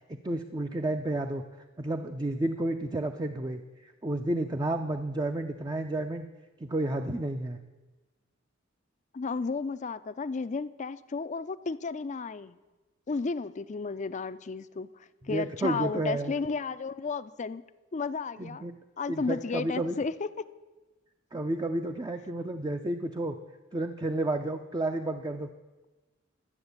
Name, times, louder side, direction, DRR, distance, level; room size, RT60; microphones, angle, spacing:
voice 1, 0.0-1.4 1.8-6.3 6.6-7.6 15.3-16.3 18.4-18.7 19.1-20.0 21.3-23.4 23.7-25.5, right 1 dB, 20° right, 5 dB, 0.5 m, -31 dB
voice 2, 9.1-12.5 13.1-17.6 17.9-18.7 19.0-20.4, left 4 dB, 40° left, 13 dB, 0.4 m, -33 dB
12.0 x 7.9 x 8.1 m, 1.2 s
head